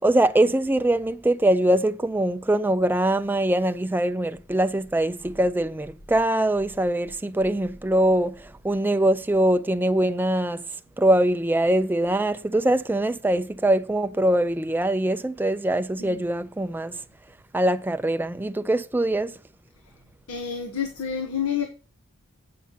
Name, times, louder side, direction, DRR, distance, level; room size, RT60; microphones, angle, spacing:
voice 1, 0.0-10.7 11.0-17.0 17.5-19.4, right 1 dB, 10° right, 0.3 m, -23 dB
voice 2, 20.3-21.7, left 7 dB, 75° left, 1.1 m, -29 dB
8.5 x 5.7 x 5.7 m
head